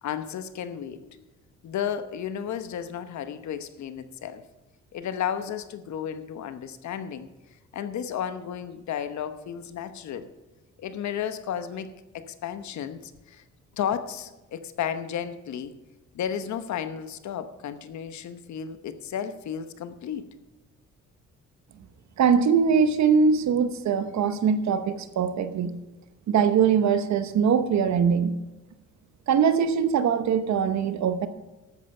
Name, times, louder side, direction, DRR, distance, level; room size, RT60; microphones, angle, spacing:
voice 1, 0.0-1.3 1.6-4.4 4.9-10.3 10.8-13.4 13.8-15.8 16.1-20.2, left 8 dB, 70° left, 11 dB, 1.0 m, -33 dB
voice 2, 22.2-25.8 26.3-28.3 29.3-31.3, right 6 dB, 65° right, 11 dB, 1.0 m, -22 dB
13.0 x 8.7 x 5.5 m, 1.1 s
cardioid pair, 90°, 30 cm